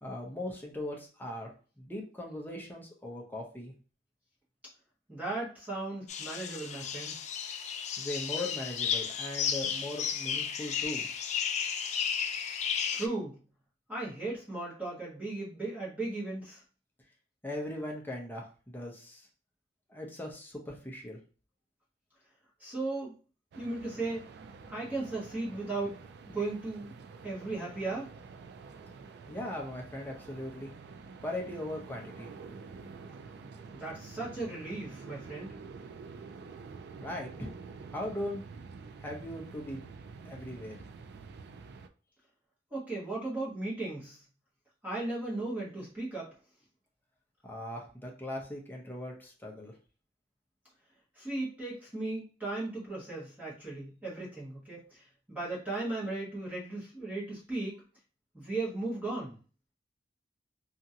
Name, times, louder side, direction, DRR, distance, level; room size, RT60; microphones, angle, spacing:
voice 1, 0.0-1.5 1.8-3.7 8.0-11.1 17.4-19.3 19.9-21.2 29.3-30.7 31.2-32.3 37.0-37.5 37.9-38.4 39.0-39.9 40.2-40.8 47.4-49.7, left 1 dB, 10° left, -1 dB, 0.7 m, -39 dB
voice 2, 5.1-7.2 12.9-13.4 13.9-16.6 22.6-23.1 23.5-24.2 24.7-26.0 26.3-26.9 27.2-28.1 33.7-35.5 42.7-44.2 44.8-46.3 51.2-57.8 58.3-59.4, right 2 dB, 10° right, -7 dB, 1.2 m, -36 dB
sound 1, 6.1-13.1, left 7 dB, 40° left, 0.3 m, -33 dB
sound 2, 23.5-41.9, right 4 dB, 65° right, 0.3 m, -48 dB
2.8 x 2.5 x 2.7 m, 0.37 s
head